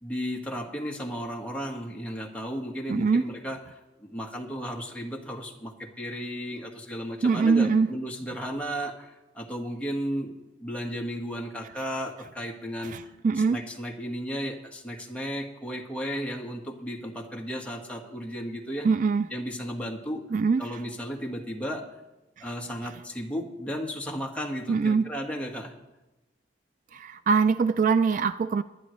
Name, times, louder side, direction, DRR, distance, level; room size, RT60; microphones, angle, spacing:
voice 1, 0.0-10.3 10.6-12.9 13.4-18.9 19.3-20.2 20.6-21.8 22.4-25.7, equal, 5° left, -1 dB, 1.6 m, -34 dB
voice 2, 2.9-3.3 7.2-7.9 12.8-13.6 18.8-19.3 20.3-20.7 22.4-22.5 24.7-25.1 26.9-28.6, right 5 dB, 45° right, 12 dB, 0.3 m, -23 dB
20.0 x 11.0 x 3.2 m, 1.0 s
head